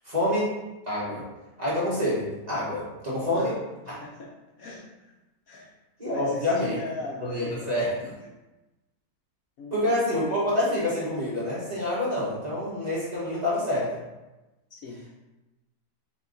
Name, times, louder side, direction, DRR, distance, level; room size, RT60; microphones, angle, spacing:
voice 1, 0.0-0.6 0.9-1.2 1.6-3.6 6.0-6.8 7.2-8.1 9.7-14.0, left 1 dB, 25° right, -8 dB, 1.3 m, -27 dB
voice 2, 3.9-4.3 4.6-4.8 5.5-5.7 6.1-7.5 9.6-9.8 14.7-15.0, left 2 dB, 65° left, -2 dB, 1.0 m, -37 dB
4.6 x 2.8 x 4.0 m, 1.0 s
omnidirectional pair, 1.8 m